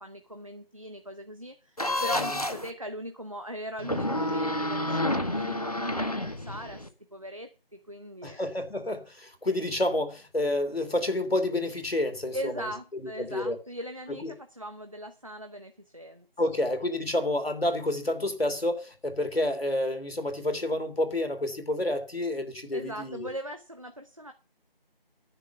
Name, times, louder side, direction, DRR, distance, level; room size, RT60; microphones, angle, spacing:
voice 1, 0.0-6.8 7.1-7.5 7.9-8.4 12.3-16.3 22.7-24.3, equal, 35° right, 0.9 m, -39 dB
sound 1, 1.8-2.7 3.8-6.9, left 1 dB, 40° left, 1.1 m, -29 dB
voice 2, 8.2-12.5 13.2-13.6 14.2-14.3 16.4-23.3, left 1 dB, 85° left, 3.1 m, -29 dB
10.0 x 7.2 x 6.9 m
figure-of-eight pair, 175°, 29 cm